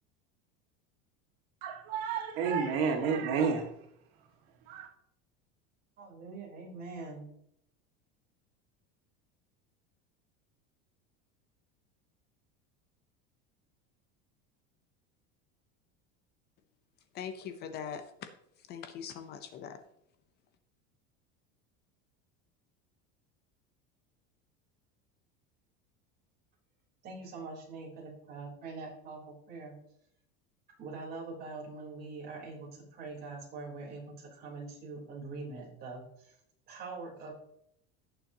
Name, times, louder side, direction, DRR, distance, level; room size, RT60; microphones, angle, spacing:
voice 1, 1.6-3.7 4.7-4.9, right 5 dB, 85° right, 2 dB, 2.0 m, -30 dB
voice 2, 6.0-7.3 27.0-29.7 30.8-36.4 36.7-37.4, right 3 dB, 35° right, -3 dB, 3.9 m, -43 dB
voice 3, 17.1-18.3 18.7-19.8, left 8 dB, 35° left, 9 dB, 0.8 m, -41 dB
17.0 x 6.8 x 2.9 m, 0.74 s
cardioid pair, 165°, 29 cm